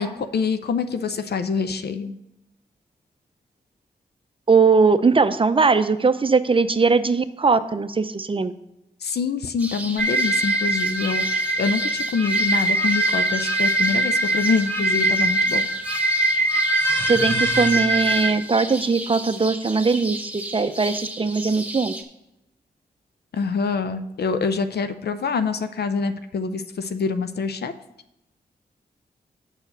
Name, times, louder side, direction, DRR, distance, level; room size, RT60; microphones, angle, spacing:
voice 1, 0.0-2.1 9.0-15.7 23.3-27.7, left 5 dB, 65° left, 10 dB, 0.6 m, -25 dB
voice 2, 4.5-8.5 17.1-21.9, right 4 dB, 30° right, 11 dB, 0.6 m, -20 dB
sound 1, 9.6-22.0, right 1 dB, 10° right, 1.3 m, -34 dB
sound 2, 10.0-18.3, right 1 dB, 15° left, 1.2 m, -22 dB
7.1 x 4.6 x 6.7 m, 0.86 s
cardioid pair, 50°, 18 cm